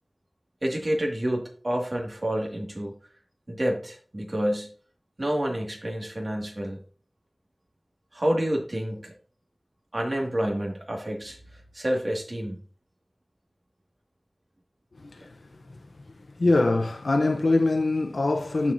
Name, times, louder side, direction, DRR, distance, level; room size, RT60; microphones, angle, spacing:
voice 1, 0.6-2.9 3.5-4.7 5.2-6.8 8.1-9.1 9.9-12.6, right 1 dB, 45° right, 2.0 m, -28 dB
voice 2, 15.0-15.6 16.4-18.7, left 2 dB, 85° left, 0.7 m, -24 dB
13.0 x 4.6 x 2.7 m
wide cardioid pair, 50°, 0 cm